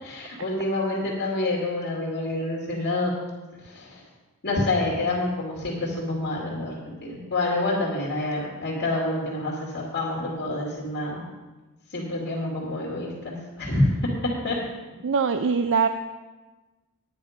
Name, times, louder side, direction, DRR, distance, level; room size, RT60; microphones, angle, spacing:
voice 1, 0.0-3.1 3.6-4.0 4.4-11.2 11.9-14.0 14.4-14.6, left 2 dB, 50° left, -4 dB, 2.3 m, -27 dB
voice 2, 15.0-15.9, right 5 dB, 60° right, 9 dB, 0.4 m, -22 dB
10.5 x 8.9 x 5.1 m, 1.2 s
head